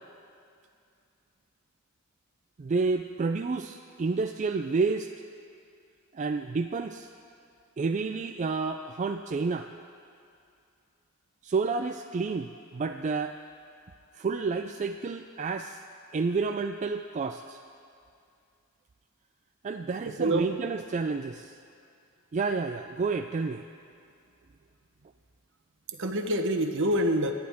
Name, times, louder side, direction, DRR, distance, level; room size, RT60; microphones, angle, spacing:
voice 1, 2.6-5.1 6.1-7.1 7.8-9.7 11.4-13.4 14.1-15.8 16.1-17.6 19.6-21.5 22.3-23.6, right 4 dB, 35° right, 6 dB, 0.4 m, -30 dB
voice 2, 20.2-20.6 25.9-27.3, right 1 dB, 60° right, 5 dB, 1.1 m, -26 dB
27.0 x 10.5 x 3.6 m, 2.5 s
head